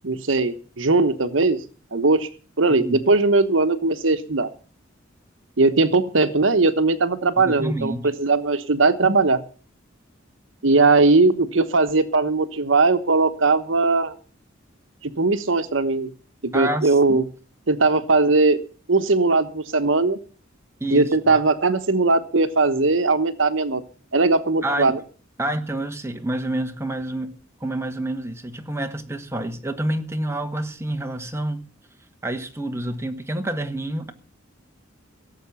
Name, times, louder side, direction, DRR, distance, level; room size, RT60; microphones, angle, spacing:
voice 1, 0.0-1.6 1.9-2.3 2.6-4.5 5.6-9.4 10.6-14.1 15.2-16.1 16.4-17.2 17.7-18.6 18.9-20.2 20.9-23.8 24.1-24.9, right 3 dB, 70° right, 1.1 m, -19 dB
voice 2, 7.4-8.1 16.5-17.2 20.8-21.1 24.6-24.9 25.4-27.3 27.6-31.6 32.2-34.1, right 1 dB, 15° right, 1.6 m, -28 dB
17.0 x 7.8 x 7.1 m
head